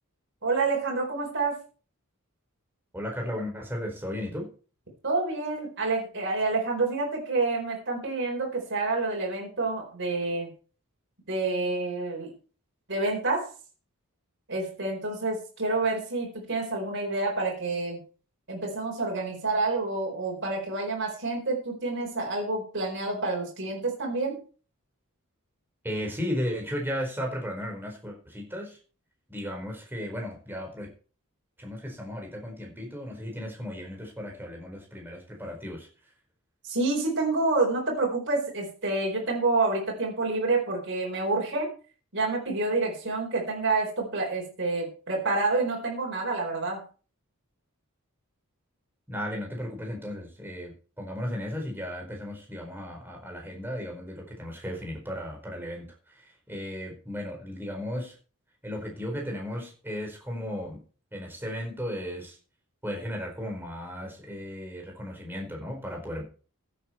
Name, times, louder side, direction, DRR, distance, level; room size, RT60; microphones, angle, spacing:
voice 1, 0.4-1.6 5.0-10.5 11.3-12.3 12.9-13.5 14.5-18.0 18.5-24.4 36.6-41.7 42.1-46.8, right 3 dB, 55° right, -1 dB, 4.6 m, -28 dB
voice 2, 2.9-4.5 25.8-28.8 29.3-30.9 31.6-35.9 49.1-58.1 58.6-60.8 61.1-62.4 62.8-66.2, equal, 10° right, 1 dB, 4.6 m, -35 dB
15.0 x 8.7 x 4.5 m, 0.38 s
head